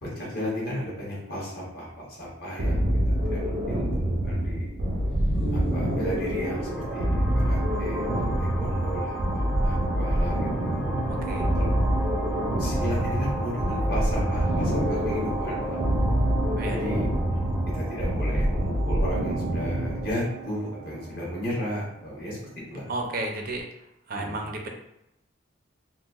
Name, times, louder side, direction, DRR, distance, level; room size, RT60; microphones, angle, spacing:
voice 1, 0.0-2.9 3.2-4.7 5.5-10.8 11.5-11.8 12.6-15.8 16.7-17.1 17.7-22.4 22.7-22.9 24.1-24.5, equal, 50° left, -5 dB, 1.1 m, -34 dB
sound 1, 2.6-20.2, equal, 85° right, 0.6 m, -26 dB
sound 2, 4.8-22.5, right 2 dB, 5° left, 0.5 m, -33 dB
voice 2, 11.1-11.5 16.6-16.8 22.9-23.6 24.1-24.7, right 2 dB, 45° right, 2 dB, 0.4 m, -32 dB
3.8 x 2.1 x 2.4 m, 0.83 s
head